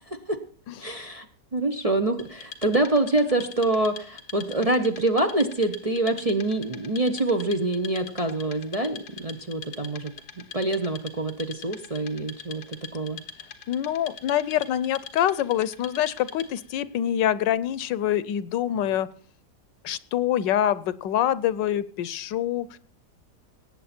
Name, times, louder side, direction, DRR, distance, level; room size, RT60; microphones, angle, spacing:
voice 1, 0.8-1.3 1.5-10.1 10.5-13.2, right 2 dB, 30° right, 4 dB, 0.7 m, -25 dB
Wood, 2.2-16.7, left 6 dB, 60° left, 1.9 m, -43 dB
voice 2, 13.7-19.1 19.8-22.8, left 11 dB, 90° left, 17 dB, 1.4 m, -25 dB
18.5 x 8.6 x 4.3 m, 0.43 s
omnidirectional pair, 1.9 m